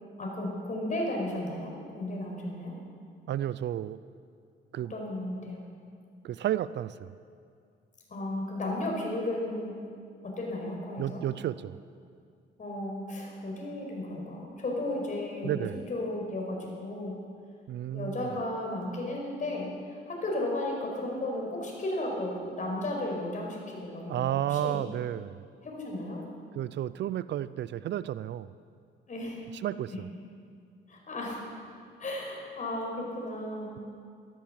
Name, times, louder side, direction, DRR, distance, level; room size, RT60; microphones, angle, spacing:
voice 1, 0.2-2.7 4.9-5.6 8.1-9.8 10.2-11.2 12.6-17.2 17.9-24.8 25.6-26.2 29.1-29.4 29.9-30.0 30.9-31.4 32.0-33.8, left 1 dB, 40° left, -1 dB, 5.4 m, -34 dB
voice 2, 3.3-4.0 4.7-4.9 6.2-7.1 11.0-11.8 15.4-15.8 17.7-18.4 24.1-25.4 26.5-28.5 29.6-29.9, right 12 dB, 60° right, 16 dB, 0.4 m, -32 dB
14.0 x 13.0 x 7.3 m, 2.3 s
cardioid pair, 90°, 20 cm